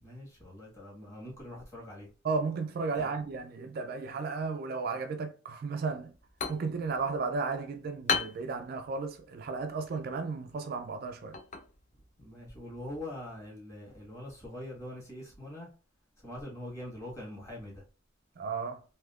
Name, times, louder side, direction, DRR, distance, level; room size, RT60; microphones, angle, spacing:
voice 1, 0.0-2.1 3.0-3.1 12.2-15.7 16.2-17.8, left 1 dB, 15° left, 1.4 m, -43 dB
voice 2, 2.2-6.1 6.5-11.4 18.4-18.8, right 4 dB, 50° right, 0.3 m, -34 dB
sound 1, 6.0-13.5, left 6 dB, 35° left, 0.4 m, -39 dB
3.4 x 2.7 x 2.3 m
head